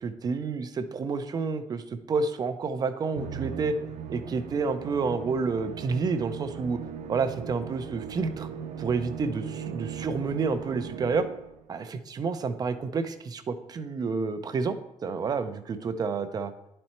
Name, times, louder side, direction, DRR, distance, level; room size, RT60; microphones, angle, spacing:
voice 1, 0.0-3.8 4.1-6.8 7.1-8.5 8.8-11.3 11.7-14.8 15.0-16.5, right 4 dB, 35° right, 10 dB, 0.6 m, -29 dB
Musical instrument, 3.2-11.6, right 7 dB, 85° right, 0.7 m, -38 dB
10.5 x 4.3 x 4.3 m, 0.86 s
cardioid pair, 140°, 11 cm